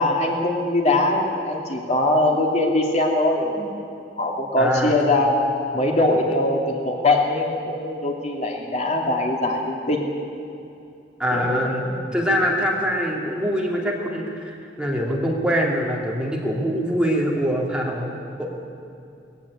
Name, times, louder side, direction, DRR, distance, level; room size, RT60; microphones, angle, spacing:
voice 1, 0.0-3.7 4.2-5.4 5.7-10.1 11.3-12.0, left 2 dB, 40° left, 0 dB, 2.5 m, -22 dB
voice 2, 4.6-5.0 11.2-11.8 12.1-18.5, equal, 5° right, -2 dB, 2.7 m, -24 dB
19.5 x 15.0 x 9.8 m, 2.6 s
head